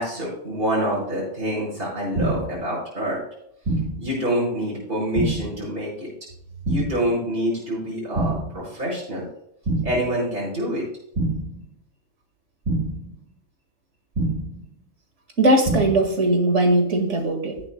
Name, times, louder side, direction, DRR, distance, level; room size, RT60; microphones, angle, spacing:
voice 1, 0.0-3.2 4.0-6.1 6.7-9.3 9.8-10.8, equal, 50° right, -6 dB, 5.1 m, -26 dB
sound 1, 2.1-2.6 3.6-4.1 5.1-5.6 6.6-7.1 8.1-8.6 9.6-10.1 11.1-11.6 12.6-13.1 14.1-14.6 15.6-16.1, right 2 dB, 70° right, 2.0 m, -26 dB
voice 2, 15.4-17.6, right 1 dB, 85° right, 4 dB, 2.2 m, -19 dB
16.5 x 8.5 x 2.2 m, 0.75 s
omnidirectional pair, 1.2 m